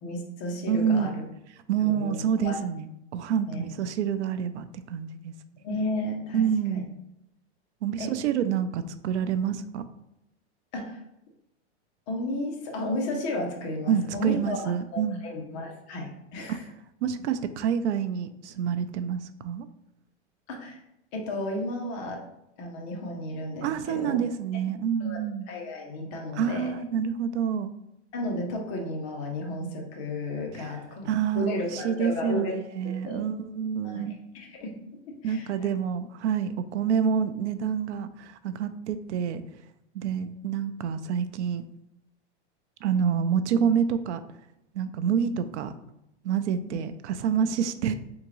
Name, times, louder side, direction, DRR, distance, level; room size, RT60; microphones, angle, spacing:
voice 1, 0.0-1.3 1.8-2.6 3.5-3.6 5.6-6.4 6.7-6.8 8.0-8.2 10.7-11.0 12.1-14.6 14.9-16.6 20.5-20.8 21.1-22.3 22.6-24.2 25.0-25.2 25.5-26.7 28.1-31.1 31.3-32.6 32.8-33.3 33.8-35.7 46.6-46.8, left 1 dB, 30° left, 1 dB, 0.6 m, -33 dB
voice 2, 0.7-1.2 1.7-5.6 6.3-6.9 7.8-9.8 13.9-15.2 16.5-16.6 17.0-19.7 23.6-25.5 26.4-27.7 31.1-34.2 35.2-39.4 39.9-41.6 42.8-44.2 44.7-45.7 46.2-47.9, right 7 dB, 75° right, 12 dB, 0.5 m, -27 dB
3.8 x 3.5 x 3.0 m, 0.83 s
supercardioid pair, 170°, 34 cm